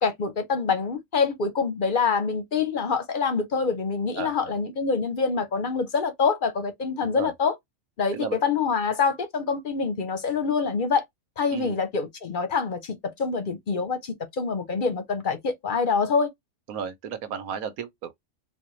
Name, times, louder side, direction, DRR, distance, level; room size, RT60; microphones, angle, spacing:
voice 1, 0.0-7.5 8.0-11.0 11.4-16.3, left 5 dB, 45° left, 0.7 m, -26 dB
voice 2, 4.1-4.6 7.0-7.3 8.1-8.4 11.5-11.8 16.7-18.1, right 7 dB, 85° right, 1.2 m, -34 dB
4.1 x 2.2 x 3.0 m
omnidirectional pair, 1.5 m